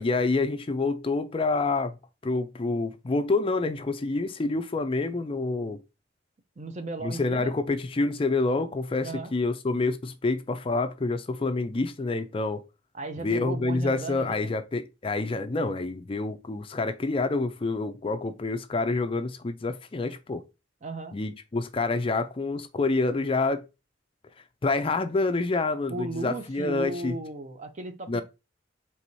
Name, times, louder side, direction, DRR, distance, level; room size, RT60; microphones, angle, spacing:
voice 1, 0.0-2.0 2.2-5.8 7.0-12.6 13.2-20.4 21.1-23.6 24.6-27.2 28.1-28.2, left 3 dB, 30° left, 0.4 m, -27 dB
voice 2, 6.6-7.5 9.0-9.3 12.9-14.5 20.8-21.2 25.9-28.2, right 2 dB, 40° right, 0.6 m, -36 dB
4.6 x 3.4 x 2.7 m
head